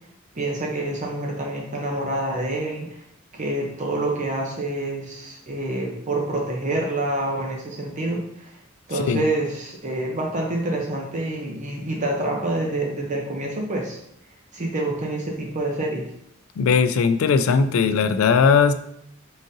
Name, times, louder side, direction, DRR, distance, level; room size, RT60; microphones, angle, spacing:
voice 1, 0.3-3.0 3.3-8.6 8.9-14.0 14.5-16.1, right 2 dB, 35° right, -1 dB, 0.6 m, -27 dB
voice 2, 16.6-18.7, left 5 dB, 85° left, 11 dB, 0.3 m, -18 dB
4.0 x 3.8 x 2.6 m, 0.75 s
head